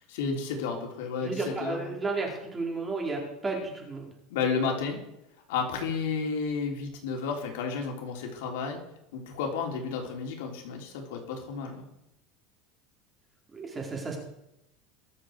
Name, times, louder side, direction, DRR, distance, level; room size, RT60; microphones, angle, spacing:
voice 1, 0.1-2.0 4.3-5.0 5.5-8.8 9.1-11.9, left 5 dB, 80° left, 1 dB, 3.6 m, -32 dB
voice 2, 1.2-4.1 13.5-14.2, right 3 dB, 15° right, -1 dB, 4.4 m, -33 dB
22.5 x 7.7 x 4.8 m, 0.83 s
supercardioid pair, 140°, 0 cm